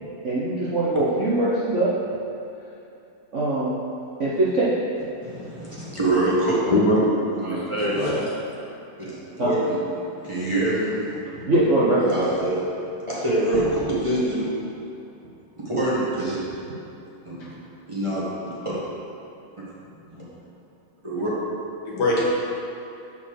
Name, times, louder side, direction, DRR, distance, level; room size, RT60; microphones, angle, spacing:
voice 1, 0.2-1.9 3.3-3.8 4.2-4.7 8.0-8.1 9.4-9.5 11.4-12.0, right 2 dB, 50° right, -8 dB, 0.9 m, -22 dB
voice 2, 5.2-6.5 7.4-7.9 9.0-9.8 10.2-11.4 12.1-12.6 13.1-14.4 15.6-16.4 17.2-17.6 17.9-18.3 18.6-18.8 20.1-20.2 21.0-21.3, right 1 dB, 15° right, -9 dB, 1.4 m, -25 dB
voice 3, 6.7-7.0 7.9-8.3 17.4-17.5 21.2-21.3 21.8-22.3, left 1 dB, 60° left, -4 dB, 1.4 m, -22 dB
sound 1, 13.5-15.3, left 4 dB, 80° left, 1.4 m, -38 dB
6.9 x 4.4 x 6.5 m, 2.7 s
omnidirectional pair, 2.3 m